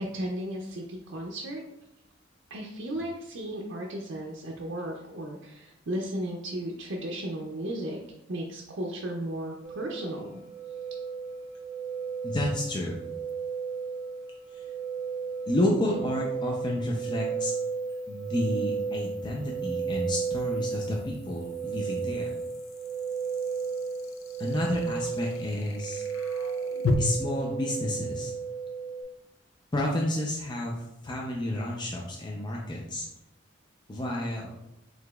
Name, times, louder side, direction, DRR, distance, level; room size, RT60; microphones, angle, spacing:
voice 1, 0.0-1.6 2.5-8.0 8.3-10.4, right 1 dB, 60° right, -2 dB, 0.5 m, -35 dB
sound 1, 9.6-29.0, right 6 dB, 20° right, 0.7 m, -34 dB
voice 2, 12.2-13.0 14.5-14.7 15.5-17.5 18.1-22.3 24.4-26.0 27.0-28.3 29.7-30.7 31.0-33.1 33.9-34.5, left 1 dB, 20° left, -2 dB, 0.4 m, -30 dB
sound 2, 13.3-13.4 16.8-26.9, left 3 dB, 85° left, 0.5 m, -39 dB
4.8 x 3.7 x 2.3 m, 0.85 s
head